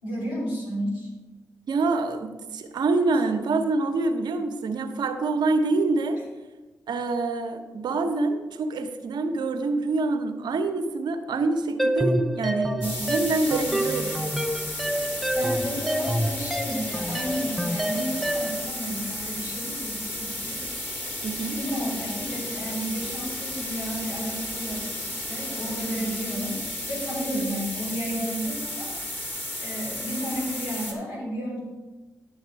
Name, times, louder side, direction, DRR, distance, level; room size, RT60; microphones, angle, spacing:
voice 1, 0.0-1.1 15.3-20.6 21.5-26.6 26.9-28.9 29.6-31.6, equal, 90° left, -5 dB, 3.6 m, -32 dB
voice 2, 1.7-6.2 6.9-14.3 21.2-21.6 27.3-27.4, right 3 dB, 70° right, 7 dB, 1.0 m, -26 dB
sound 1, 11.8-18.7, right 1 dB, ahead, 0.7 m, -28 dB
sound 2, 12.8-30.9, left 1 dB, 25° left, 2.6 m, -33 dB
10.5 x 6.5 x 4.7 m, 1.2 s
supercardioid pair, 40°, 8 cm